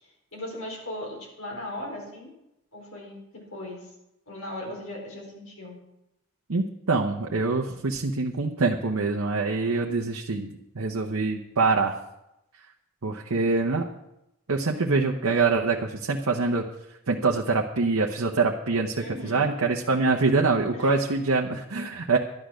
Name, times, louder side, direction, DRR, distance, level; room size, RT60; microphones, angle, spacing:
voice 1, 0.0-2.3 2.7-3.9 4.3-5.7 18.9-19.5 20.7-20.9, left 1 dB, 80° left, -1 dB, 4.7 m, -38 dB
voice 2, 6.5-12.0 13.0-13.9 14.5-16.6 17.1-22.2, right 3 dB, 90° right, 1 dB, 0.9 m, -25 dB
12.0 x 10.5 x 6.3 m, 0.88 s
head